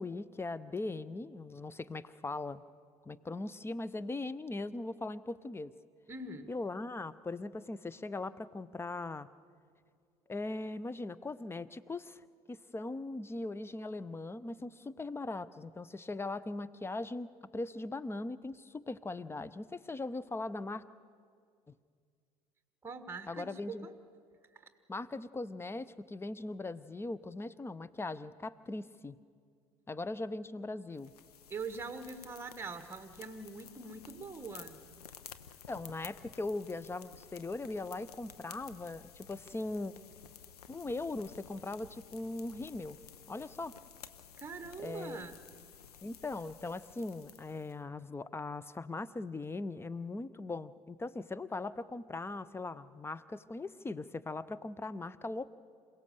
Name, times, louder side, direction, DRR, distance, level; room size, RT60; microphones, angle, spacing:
voice 1, 0.0-2.6 3.0-5.7 6.5-9.3 10.3-12.2 12.5-20.8 23.3-23.9 24.9-29.2 29.9-31.1 35.7-39.9 40.7-43.0 43.3-43.7 44.8-45.2 46.0-55.5, left 2 dB, 10° left, 17 dB, 0.6 m, -40 dB
voice 2, 6.1-6.5 22.8-24.0 24.5-24.7 31.5-34.8 44.4-45.4, right 4 dB, 10° right, 9 dB, 1.3 m, -43 dB
sound 1, 31.0-47.8, left 8 dB, 75° left, 0.9 m, -54 dB
28.0 x 16.5 x 6.8 m, 2.2 s
figure-of-eight pair, 65°, 20 cm